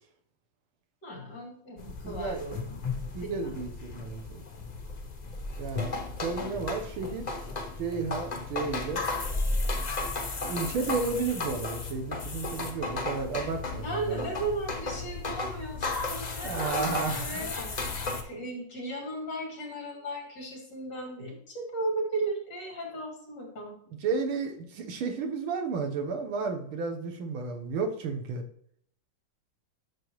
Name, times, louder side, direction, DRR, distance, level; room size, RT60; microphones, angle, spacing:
voice 1, 1.0-3.6 13.8-17.9 18.2-23.7, right 2 dB, 55° left, -1 dB, 3.2 m, -36 dB
sound 1, 1.8-18.2, left 3 dB, 75° left, 0.4 m, -34 dB
voice 2, 1.8-2.4 3.1-4.4 5.6-7.3 7.8-9.1 10.5-14.3 16.4-17.4 24.0-28.4, right 4 dB, 85° right, 4 dB, 1.9 m, -32 dB
11.5 x 6.8 x 3.1 m, 0.68 s
omnidirectional pair, 2.2 m